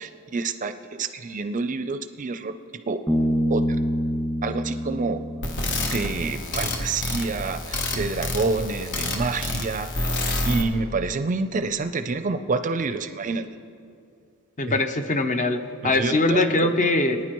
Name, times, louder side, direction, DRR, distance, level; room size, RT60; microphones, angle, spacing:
voice 1, 0.0-3.0 3.5-3.6 4.4-5.2 5.9-10.1 10.4-13.4 14.7-14.8 15.8-16.7, right 3 dB, 35° right, 10 dB, 0.5 m, -28 dB
Bass guitar, 3.1-6.6, equal, 15° left, 1.8 m, -26 dB
sound 1, 5.4-10.6, left 2 dB, 55° left, 1.1 m, -28 dB
voice 2, 14.6-17.2, left 2 dB, 35° left, 7 dB, 0.7 m, -22 dB
23.5 x 9.7 x 3.0 m, 2.3 s
head